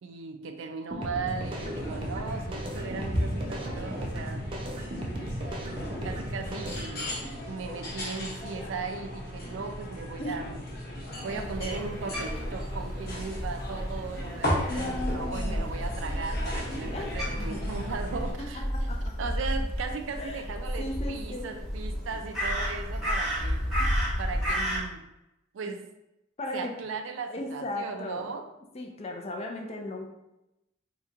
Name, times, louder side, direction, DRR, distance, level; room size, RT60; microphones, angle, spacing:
voice 1, 0.0-4.5 6.0-7.1 7.5-10.6 11.2-18.6 19.2-23.7 24.2-25.0 25.5-25.8 26.5-28.5, right 4 dB, 85° right, 6 dB, 0.4 m, -37 dB
sound 1, 0.9-6.9, equal, 30° right, 0.4 m, -36 dB
sound 2, 1.3-18.3, equal, 55° left, 0.9 m, -36 dB
voice 2, 10.2-10.5 14.7-15.8 16.9-17.9 18.4-19.2 20.2-21.6 23.8-23.9 26.4-26.8 27.3-28.4 28.7-30.1, left 2 dB, 35° left, 2 dB, 0.4 m, -37 dB
Crow, 11.4-24.8, equal, ahead, 0.8 m, -32 dB
2.9 x 2.2 x 3.6 m, 0.90 s
head